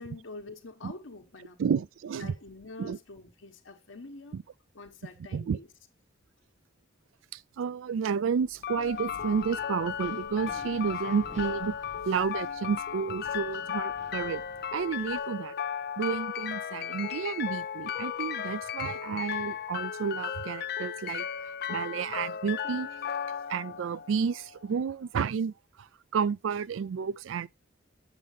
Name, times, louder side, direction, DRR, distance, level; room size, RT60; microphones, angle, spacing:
voice 1, 0.0-1.6 2.2-4.4 4.7-5.7, left 3 dB, 85° left, 1.2 m, -46 dB
voice 2, 1.6-2.3 2.8-3.0 4.3-4.4 5.3-5.6 7.6-11.8 12.1-14.4 14.7-15.5 16.0-21.2 21.7-22.9 23.5-25.5 26.1-27.5, right 6 dB, 90° right, 0.4 m, -31 dB
Wind, 8.3-15.2, equal, 40° right, 1.8 m, -52 dB
sound 1, 8.6-24.6, left 8 dB, 55° left, 0.4 m, -35 dB
7.5 x 7.2 x 3.2 m
head